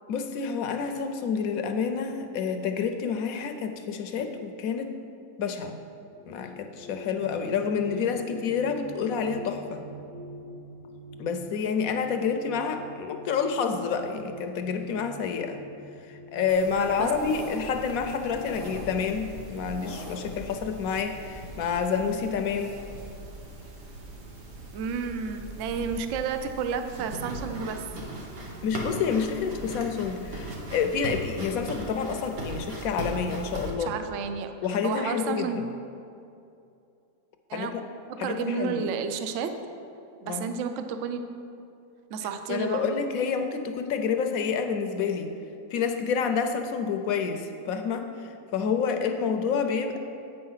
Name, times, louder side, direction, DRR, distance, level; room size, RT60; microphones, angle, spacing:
voice 1, 0.1-4.9 5.4-5.8 6.3-9.8 11.2-15.6 16.1-22.8 28.6-33.9 34.6-35.6 37.5-37.7 38.2-38.8 40.2-40.5 42.5-45.3 45.7-48.1 48.5-50.0, left 6 dB, 70° left, 6 dB, 1.0 m, -28 dB
sound 1, 6.0-18.8, equal, 35° right, 1.2 m, -46 dB
sound 2, 16.5-33.7, right 1 dB, 85° right, 1.8 m, -39 dB
voice 2, 24.7-27.8 33.8-34.6 34.8-35.6 37.5-37.7 38.2-39.5 40.2-41.4 42.1-42.9, right 6 dB, 65° right, 7 dB, 0.8 m, -31 dB
8.4 x 5.6 x 5.6 m, 2.6 s
omnidirectional pair, 1.7 m